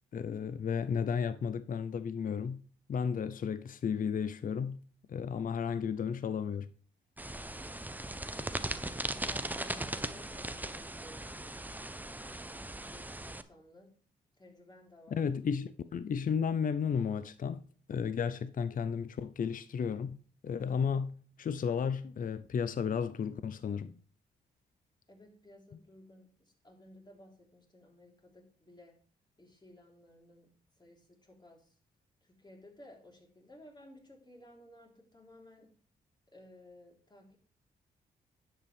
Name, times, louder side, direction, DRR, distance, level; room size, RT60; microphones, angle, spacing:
voice 1, 0.1-2.6 2.9-4.8 5.1-6.7 15.1-17.6 17.9-23.9, left 6 dB, 45° left, 0.6 m, -33 dB
sound 1, 7.2-13.4, right 1 dB, 10° right, 0.8 m, -39 dB
voice 2, 8.1-11.4 12.9-14.0 14.4-15.3 25.1-29.0 29.4-30.5 30.8-31.8 32.2-35.7 36.3-37.4, left 1 dB, 20° left, 3.7 m, -57 dB
10.5 x 7.8 x 3.4 m
hypercardioid pair, 45°, 20 cm